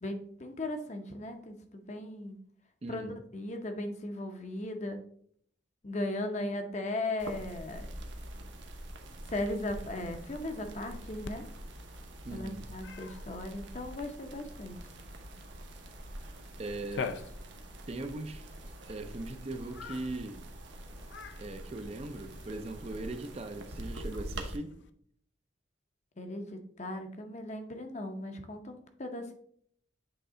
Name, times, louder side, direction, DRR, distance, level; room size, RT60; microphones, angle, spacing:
voice 1, 0.0-2.4 2.9-3.1 3.3-5.0 5.8-7.9 9.3-11.5 12.3-14.8 26.2-29.3, left 1 dB, 35° left, 0.7 m, -37 dB
voice 2, 2.8-3.2 12.2-12.7 16.6-17.2 17.9-18.5 18.9-20.5 21.4-24.8, right 2 dB, 30° right, 0.4 m, -40 dB
sound 1, 7.2-24.6, right 1 dB, 65° right, 0.9 m, -46 dB
sound 2, 7.7-24.0, equal, 85° right, 1.9 m, -53 dB
Cat, 11.2-24.9, left 5 dB, 65° left, 0.4 m, -48 dB
7.9 x 3.2 x 3.7 m
head